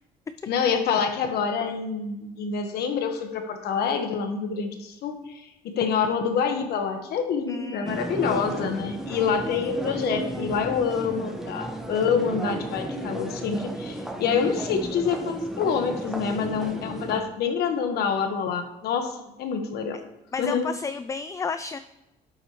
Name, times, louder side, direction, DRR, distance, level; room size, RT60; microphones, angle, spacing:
voice 1, 0.5-5.5 5.7-20.0 20.4-20.6, left 6 dB, 70° left, 6 dB, 1.4 m, -27 dB
voice 2, 7.5-8.7 20.3-21.8, left 5 dB, 20° left, 11 dB, 0.3 m, -33 dB
sound 1, 7.8-17.2, right 1 dB, 5° right, 1.2 m, -33 dB
12.0 x 7.7 x 3.1 m, 0.93 s
cardioid pair, 110°, 17 cm